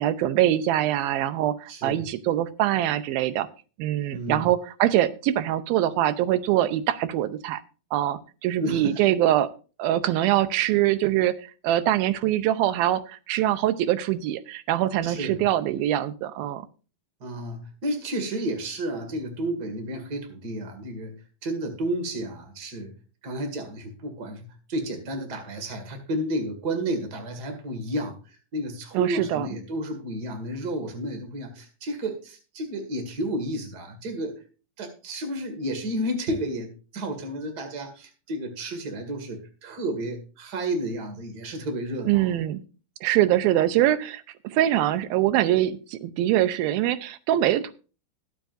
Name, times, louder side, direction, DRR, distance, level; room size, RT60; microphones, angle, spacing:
voice 1, 0.0-3.5 3.8-7.6 7.9-9.5 9.8-16.6 28.9-29.5 42.1-42.6 43.0-47.7, right 13 dB, 90° right, 12 dB, 2.6 m, -23 dB
voice 2, 1.7-2.1 4.1-4.5 8.6-8.9 15.0-15.4 17.2-21.1 21.4-22.9 23.2-28.2 28.5-34.4 34.8-42.2, right 1 dB, 35° right, 5 dB, 2.1 m, -31 dB
21.0 x 7.5 x 2.6 m, 0.35 s
omnidirectional pair, 4.1 m